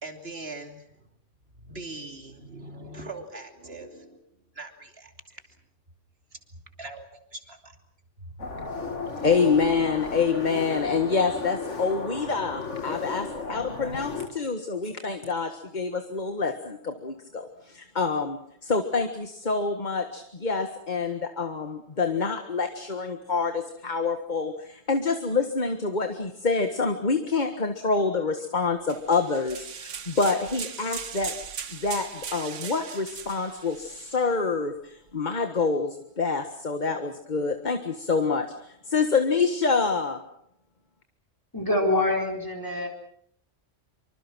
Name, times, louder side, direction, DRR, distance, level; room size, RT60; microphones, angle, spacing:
voice 1, 0.0-1.1 1.6-4.2 4.5-5.5 6.3-6.4 6.8-7.8 8.2-8.4, right 2 dB, 55° right, 5 dB, 3.2 m, -41 dB
sound 1, 8.4-14.3, left 4 dB, 70° left, 2.7 m, -35 dB
voice 2, 9.2-31.3 31.7-40.2, left 4 dB, 35° left, 7 dB, 1.7 m, -27 dB
sound 2, 28.9-34.3, right 7 dB, 75° right, 1.5 m, -39 dB
voice 3, 41.5-42.9, left 2 dB, 15° left, 1 dB, 4.1 m, -25 dB
25.5 x 25.5 x 6.2 m, 0.68 s
omnidirectional pair, 1.3 m